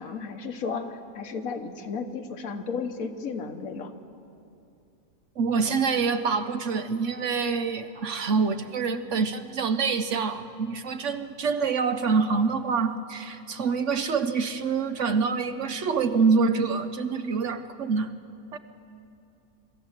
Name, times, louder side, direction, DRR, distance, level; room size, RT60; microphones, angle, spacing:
voice 1, 0.0-3.9, left 5 dB, 65° left, 7 dB, 1.5 m, -34 dB
voice 2, 5.4-18.1 18.5-18.6, right 5 dB, 60° right, 10 dB, 0.9 m, -26 dB
24.5 x 13.5 x 8.0 m, 2.6 s
omnidirectional pair, 1.6 m